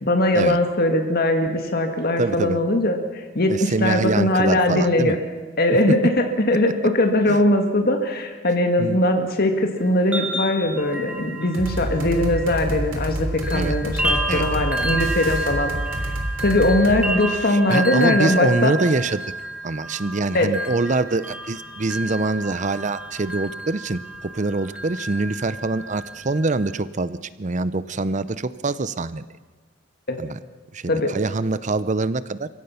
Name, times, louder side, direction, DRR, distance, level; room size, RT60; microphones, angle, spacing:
voice 1, 0.0-5.2 5.6-16.0 16.4-18.8 20.3-20.5 30.1-30.2 30.9-31.1, left 1 dB, 50° left, 5 dB, 1.8 m, -20 dB
voice 2, 2.2-2.6 3.5-5.2 7.3-7.4 8.8-9.0 13.5-13.8 14.3-14.6 17.4-19.3 19.6-29.3 30.2-30.4 30.7-32.5, right 3 dB, 40° right, 16 dB, 0.7 m, -25 dB
sound 1, 9.8-13.1 13.4-26.8, right 1 dB, 5° right, 2.1 m, -30 dB
sound 2, 11.5-17.0, right 1 dB, 85° right, 3.3 m, -28 dB
29.5 x 16.5 x 5.8 m, 1.4 s
head